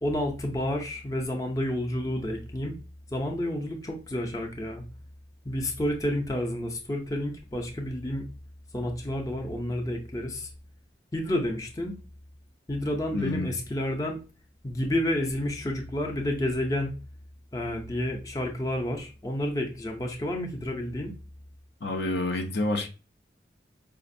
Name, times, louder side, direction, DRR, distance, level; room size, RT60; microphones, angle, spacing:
voice 1, 0.0-2.7 3.1-4.8 5.4-8.3 8.7-10.5 11.1-11.9 12.7-14.2 14.6-17.0 17.5-21.1, left 1 dB, 20° left, 0.5 m, -30 dB
voice 2, 13.1-13.5 21.8-22.9, left 2 dB, 75° left, 0.6 m, -28 dB
5.0 x 2.5 x 2.6 m
head